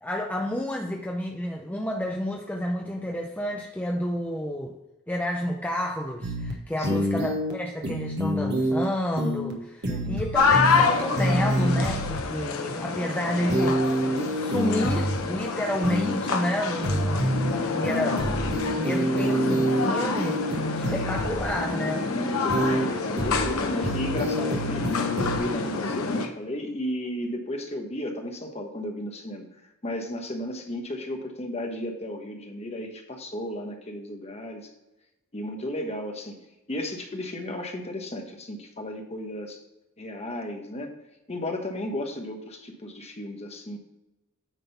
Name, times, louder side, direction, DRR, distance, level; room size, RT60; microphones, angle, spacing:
voice 1, 0.0-4.7 5.1-18.3 18.7-22.1, left 1 dB, 5° left, 0 dB, 0.6 m, -30 dB
sound 1, 6.2-6.5 6.8-7.5 7.8-8.8 9.2-9.5 9.8-10.8 11.2-12.2 13.5-15.2 15.8-16.2 16.8-17.5 17.8-19.8 20.2-21.5 22.5-22.8 23.2-23.5 23.8-25.4, equal, 55° right, 1.4 m, -27 dB
voice 2, 6.8-7.1 9.9-10.2 22.1-24.9 25.2-29.5 29.8-34.7 35.3-36.4 36.7-39.6 40.0-40.9 41.3-43.8, left 1 dB, 30° left, 3 dB, 1.2 m, -34 dB
sound 2, 10.3-26.3, left 4 dB, 80° left, 0.9 m, -28 dB
9.2 x 3.8 x 5.6 m, 0.96 s
head